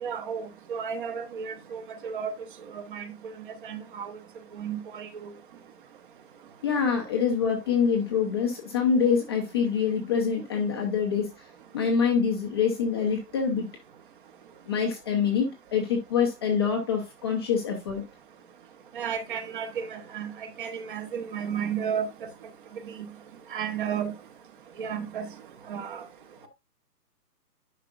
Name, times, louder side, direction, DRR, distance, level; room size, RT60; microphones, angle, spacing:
voice 1, 0.0-2.3 2.7-3.1 3.6-4.2 4.5-5.3 18.9-20.3 20.6-22.1 22.9-23.1 23.5-24.1 24.8-25.3 25.7-26.0, right 7 dB, 30° right, 0.9 m, -33 dB
voice 2, 6.6-11.4 11.7-13.7 14.7-18.0, left 6 dB, 15° left, 0.6 m, -25 dB
10.5 x 5.0 x 2.4 m
hypercardioid pair, 150°, 49 cm